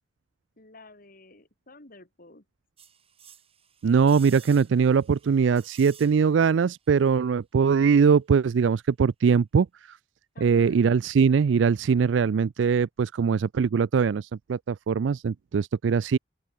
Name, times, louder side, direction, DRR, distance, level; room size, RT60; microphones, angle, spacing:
voice 1, 0.6-2.4 10.3-10.8, left 2 dB, 50° left, 3.7 m, -51 dB
sound 1, 2.8-6.6 6.8-6.9, right 8 dB, 30° right, 7.9 m, -51 dB
voice 2, 3.8-10.0 10.4-16.2, right 6 dB, 75° right, 0.4 m, -22 dB
open air
head